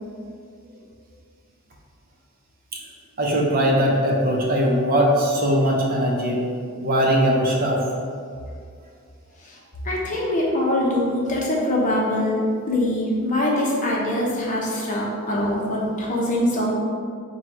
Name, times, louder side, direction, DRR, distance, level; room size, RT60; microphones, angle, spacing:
voice 1, 3.2-6.4 6.8-7.8, equal, 45° right, -2 dB, 0.6 m, -20 dB
voice 2, 9.8-12.4 12.7-16.7, left 1 dB, 35° left, -3 dB, 0.8 m, -23 dB
4.5 x 2.3 x 4.5 m, 2.2 s
head